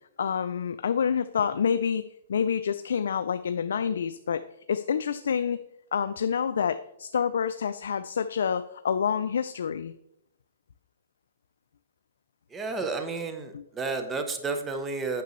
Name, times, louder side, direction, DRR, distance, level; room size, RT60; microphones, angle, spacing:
voice 1, 0.2-2.0 2.3-4.4 4.7-5.6 5.9-9.9 13.5-13.6, left 7 dB, 75° left, 10 dB, 0.3 m, -27 dB
voice 2, 12.5-15.2, right 4 dB, 10° right, 6 dB, 0.7 m, -31 dB
8.2 x 6.1 x 3.0 m, 0.79 s
hypercardioid pair, 150°, 0 cm